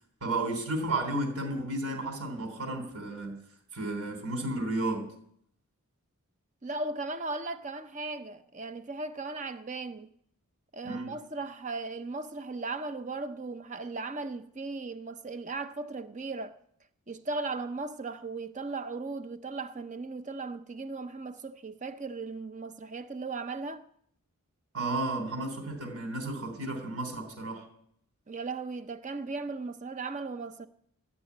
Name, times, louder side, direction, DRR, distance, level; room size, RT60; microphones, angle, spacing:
voice 1, 0.2-3.4 3.7-5.1 10.8-11.1 24.7-27.6, right 2 dB, 75° right, 3.7 m, -33 dB
voice 2, 6.6-10.1 10.7-16.6 17.1-23.8 28.3-30.7, right 3 dB, 35° right, 0.8 m, -37 dB
13.5 x 6.9 x 9.6 m
head